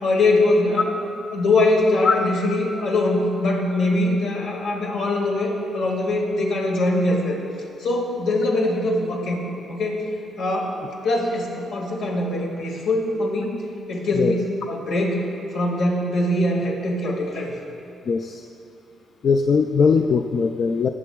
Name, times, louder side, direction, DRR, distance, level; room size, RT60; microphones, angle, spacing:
voice 1, 0.0-1.0 1.3-7.4 7.8-9.4 9.7-10.0 10.4-10.8 11.0-13.6 13.9-14.4 14.7-15.2 15.5-17.5, left 2 dB, 75° left, -3 dB, 1.9 m, -22 dB
voice 2, 18.1-18.4 19.2-20.9, left 5 dB, 55° left, 5 dB, 0.3 m, -20 dB
18.0 x 7.1 x 2.3 m, 2.8 s
cardioid pair, 90°, 0 cm